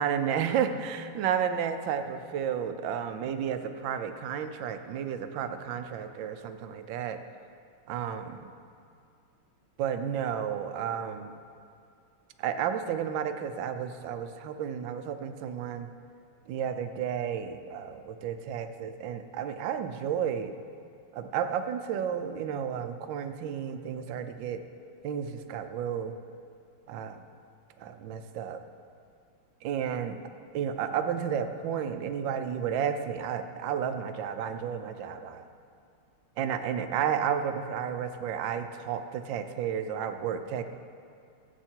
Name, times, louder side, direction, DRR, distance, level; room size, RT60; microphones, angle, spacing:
voice 1, 0.0-7.2 7.9-8.5 9.8-11.4 12.4-15.9 16.5-20.5 21.1-24.6 25.0-26.2 26.9-27.2 27.8-28.6 29.6-30.2 30.5-35.5 36.4-40.6, right 8 dB, 70° right, 8 dB, 1.3 m, -32 dB
17.5 x 8.2 x 4.5 m, 2.4 s
omnidirectional pair, 2.3 m